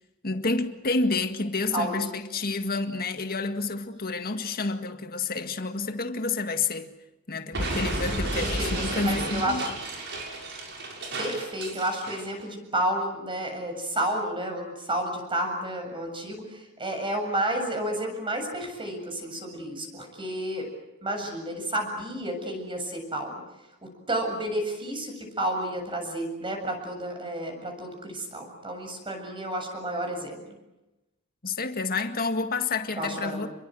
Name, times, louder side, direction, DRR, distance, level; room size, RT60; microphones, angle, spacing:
voice 1, 0.2-6.9 7.3-9.7 31.4-33.5, left 3 dB, 45° left, 1.9 m, -29 dB
voice 2, 1.7-2.1 8.3-9.7 11.2-20.7 21.0-23.4 23.8-30.4 33.0-33.5, right 1 dB, 25° right, 7.5 m, -31 dB
Explosion, 7.5-12.3, right 1 dB, 50° right, 6.6 m, -32 dB
29.0 x 23.0 x 7.8 m
head